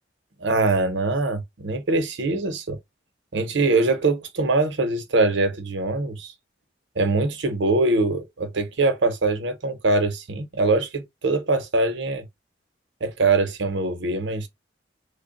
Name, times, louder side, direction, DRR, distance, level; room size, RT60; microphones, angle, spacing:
voice 1, 0.4-2.8 3.3-6.3 7.0-12.2 13.0-14.5, right 3 dB, 90° right, 0.8 m, -23 dB
3.2 x 2.1 x 3.8 m
head